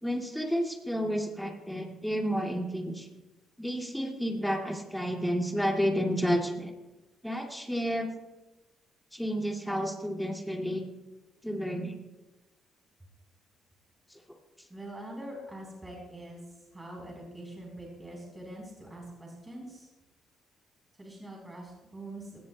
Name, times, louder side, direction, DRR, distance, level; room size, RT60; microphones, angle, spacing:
voice 1, 0.0-3.1 3.6-6.7 7.2-8.1 9.1-10.8 11.4-11.9, equal, ahead, 1 dB, 2.3 m, -31 dB
voice 2, 14.7-16.4 16.7-19.9 21.0-22.4, right 1 dB, 15° right, -1 dB, 3.9 m, -44 dB
19.5 x 17.0 x 2.2 m, 1.1 s
cardioid pair, 90°, 0 cm